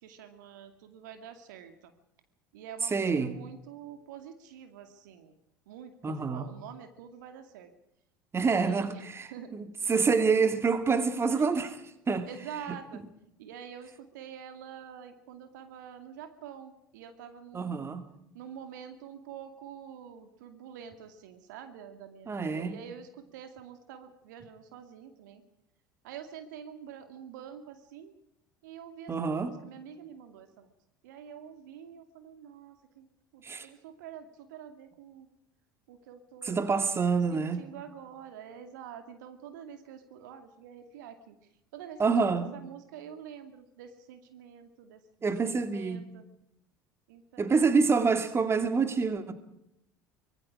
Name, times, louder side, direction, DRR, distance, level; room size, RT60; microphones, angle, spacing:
voice 1, 0.0-1.9 2.5-5.3 5.7-7.7 8.4-9.0 9.3-9.5 11.3-11.4 12.2-13.0 13.4-17.8 18.3-25.4 26.0-28.1 28.6-30.7 31.0-33.1 33.3-35.3 35.9-36.7 37.3-41.4 41.7-42.2 42.5-45.0 45.5-46.2 47.1-47.5, right 8 dB, 65° right, 2.3 m, -46 dB
voice 2, 2.8-3.3 6.0-6.5 8.3-12.3 12.7-12.8 17.5-18.1 22.3-22.8 29.1-29.6 33.4-33.7 36.4-37.6 42.0-42.5 45.2-46.1 47.4-49.3, right 5 dB, 25° right, 2.3 m, -27 dB
25.0 x 22.0 x 4.9 m
figure-of-eight pair, 65°, 11 cm